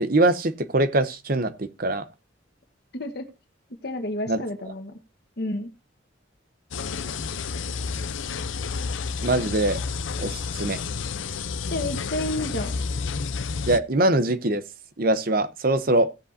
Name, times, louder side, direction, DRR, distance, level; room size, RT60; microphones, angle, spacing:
voice 1, 0.0-2.0 4.3-4.4 9.2-9.8 10.2-10.8 13.7-14.6 15.0-16.1, right 2 dB, 50° right, 0.9 m, -23 dB
voice 2, 2.9-3.3 3.8-5.0 5.4-5.7 11.7-12.8, left 1 dB, 55° left, 1.4 m, -30 dB
sound 1, 6.7-13.8, left 5 dB, 85° left, 0.6 m, -30 dB
16.5 x 7.6 x 2.7 m
head